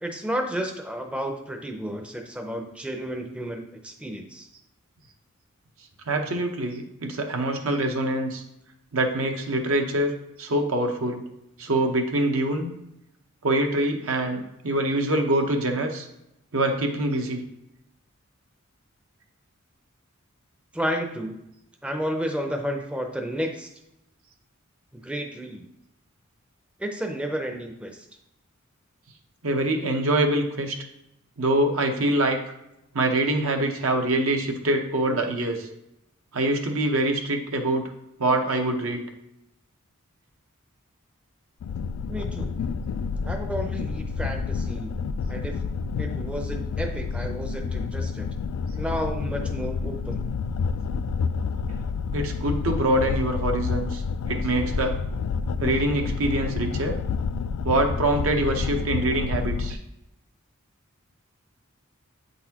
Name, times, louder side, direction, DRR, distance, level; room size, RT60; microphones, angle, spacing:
voice 1, 0.0-4.5 20.7-21.4 21.8-23.7 24.9-25.6 26.8-28.0 42.1-42.5 43.2-45.0 45.3-45.6 46.0-48.3 48.8-50.2, equal, 5° right, 3 dB, 0.5 m, -32 dB
voice 2, 6.1-8.4 8.9-11.2 11.6-12.7 13.4-16.1 16.5-17.4 29.4-30.8 31.4-32.4 32.9-35.7 36.3-37.8 38.2-39.0 52.1-54.0 54.3-55.0 55.6-57.0 57.6-59.8, right 1 dB, 75° right, 4 dB, 0.9 m, -24 dB
sound 1, 41.6-59.7, left 5 dB, 80° left, 0.3 m, -29 dB
8.1 x 4.0 x 2.9 m, 0.86 s
head